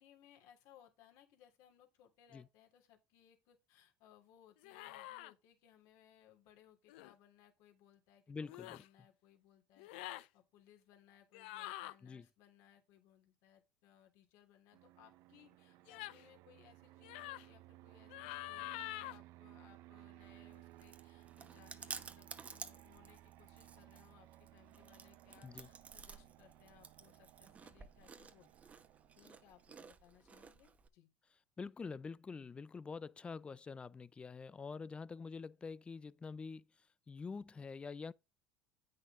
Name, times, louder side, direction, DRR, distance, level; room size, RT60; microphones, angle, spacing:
voice 1, 0.0-28.5 29.2-31.1, left 10 dB, 65° left, 3.1 m, -66 dB
sound 1, 4.6-5.3 6.9-7.1 8.4-8.9 9.8-10.3 11.3-11.9 15.9-16.2 17.0-17.5 18.1-19.2, left 17 dB, 85° left, 0.6 m, -46 dB
voice 2, 8.3-8.8 12.0-12.3 25.4-25.7 31.6-36.6 37.1-38.1, left 5 dB, 20° left, 0.5 m, -46 dB
Fixed-wing aircraft airplane, 14.7-29.9, right 16 dB, 65° right, 0.8 m, -60 dB
Chewing mastication, 20.2-30.9, right 5 dB, 25° right, 1.2 m, -53 dB
9.1 x 6.5 x 3.6 m
supercardioid pair, 120°, 6 cm